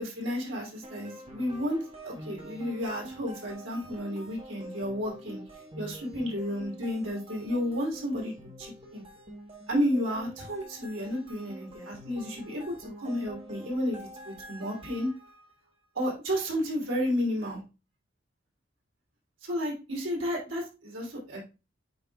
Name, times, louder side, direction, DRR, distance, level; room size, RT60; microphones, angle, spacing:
voice 1, 0.0-5.4 5.8-8.3 8.6-9.0 9.7-14.0 14.2-15.1 15.9-17.6 19.4-21.4, equal, 80° right, -1 dB, 2.9 m, -32 dB
sound 1, 0.8-15.5, equal, 30° right, 1.1 m, -46 dB
8.4 x 5.5 x 2.3 m, 0.29 s
head